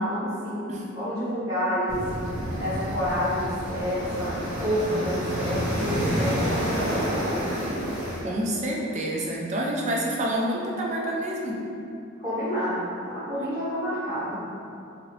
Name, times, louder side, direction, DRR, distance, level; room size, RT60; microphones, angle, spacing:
voice 1, 0.0-0.6 0.9-2.0 2.6-7.8 12.2-14.3, equal, 15° right, -14 dB, 1.3 m, -29 dB
sound 1, 1.9-8.2, equal, 65° right, 0.9 m, -29 dB
voice 2, 8.2-11.7, right 1 dB, 35° right, -2 dB, 0.4 m, -28 dB
2.8 x 2.6 x 3.1 m, 2.6 s
head